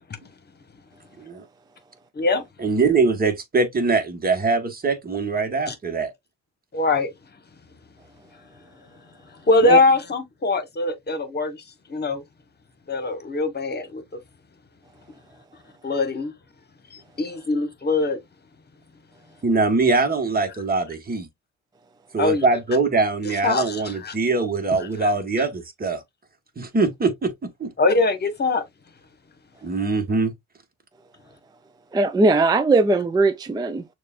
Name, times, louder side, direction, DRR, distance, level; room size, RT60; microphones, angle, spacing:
voice 1, 2.6-6.1 19.4-21.3 22.1-26.0 26.6-27.7 29.6-30.3, right 3 dB, 30° right, 1.3 m, -22 dB
voice 2, 6.7-7.1 9.5-11.6 11.9-12.2 12.9-14.0 15.8-16.3 16.9-18.2 22.2-22.5 23.2-24.1 24.7-25.1 27.8-28.6, left 3 dB, 35° left, 1.3 m, -22 dB
voice 3, 31.9-33.9, right 3 dB, 15° right, 0.4 m, -19 dB
6.5 x 2.5 x 2.4 m
cardioid pair, 90°, 30 cm